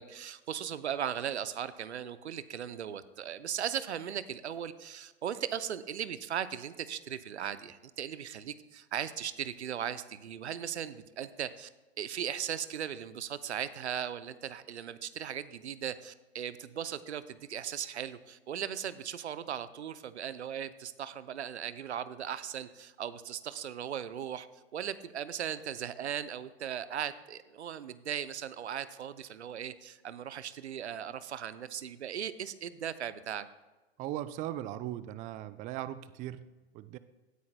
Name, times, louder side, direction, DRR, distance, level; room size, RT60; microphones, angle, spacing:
voice 1, 0.0-11.7 12.0-24.5 24.7-33.5, right 9 dB, 80° right, 14 dB, 0.7 m, -38 dB
voice 2, 34.0-37.0, right 13 dB, 25° right, 15 dB, 0.4 m, -39 dB
16.5 x 9.5 x 2.2 m, 1.2 s
figure-of-eight pair, 95°, 33 cm